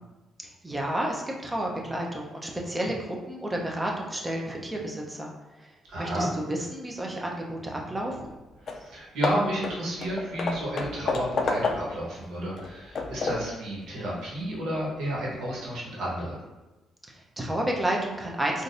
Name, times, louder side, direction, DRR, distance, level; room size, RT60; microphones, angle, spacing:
voice 1, 0.6-2.9 3.3-5.3 5.6-5.7 6.0-8.3 17.1-18.6, right 1 dB, 15° right, -1 dB, 0.7 m, -31 dB
voice 2, 5.9-6.3 8.6-16.4, right 1 dB, 80° right, -6 dB, 1.2 m, -31 dB
Hammer / Wood, 8.3-8.4 8.7-8.9 9.2-12.1 12.6-13.6, left 3 dB, 55° left, 0.4 m, -30 dB
3.8 x 2.5 x 2.6 m, 1.1 s
cardioid pair, 90°, 0 cm